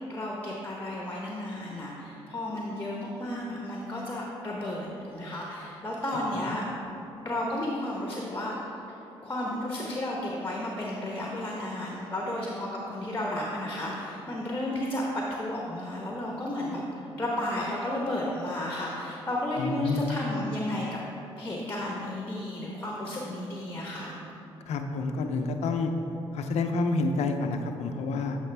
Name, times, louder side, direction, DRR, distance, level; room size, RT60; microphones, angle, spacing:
voice 1, 0.1-6.6 7.2-8.6 9.2-21.0 21.4-24.2, left 1 dB, 20° left, -2 dB, 1.1 m, -33 dB
voice 2, 19.6-20.2 24.7-25.9 26.3-28.4, left 3 dB, 70° left, 6 dB, 0.6 m, -28 dB
8.0 x 5.0 x 3.4 m, 2.9 s
supercardioid pair, 55°, 12 cm